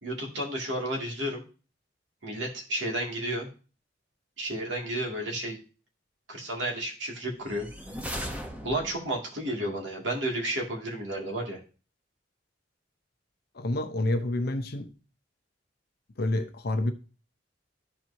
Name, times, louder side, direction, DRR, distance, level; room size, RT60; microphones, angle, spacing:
voice 1, 0.0-1.4 2.2-3.5 4.4-5.6 6.3-7.7 8.6-11.6, right 1 dB, 75° right, 2.4 m, -32 dB
sound 1, 7.4-9.2, equal, 10° right, 1.0 m, -37 dB
voice 2, 13.5-14.9 16.2-16.9, left 1 dB, 55° left, 0.8 m, -28 dB
13.5 x 4.5 x 2.8 m
head